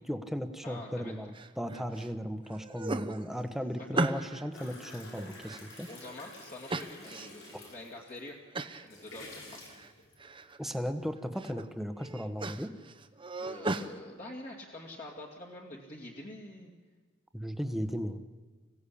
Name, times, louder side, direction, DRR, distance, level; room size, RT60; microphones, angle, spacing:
voice 1, 0.1-5.9 10.6-12.7 17.3-18.2, equal, ahead, 7 dB, 1.2 m, -36 dB
voice 2, 0.6-1.1 3.9-4.1 5.9-8.4 8.8-9.6 13.4-16.7, left 1 dB, 40° left, -1 dB, 2.5 m, -46 dB
sound 1, 1.3-2.1 2.5-4.5 4.9-6.1 6.7-7.5 7.9-8.0 8.5-8.9 9.2-9.9 10.2-10.7 11.2-11.6 12.0-13.9, right 2 dB, 25° right, 0.9 m, -36 dB
sound 2, 4.5-8.3 8.7-10.5, left 2 dB, 85° left, 7.5 m, -50 dB
26.0 x 16.5 x 8.6 m, 1.4 s
head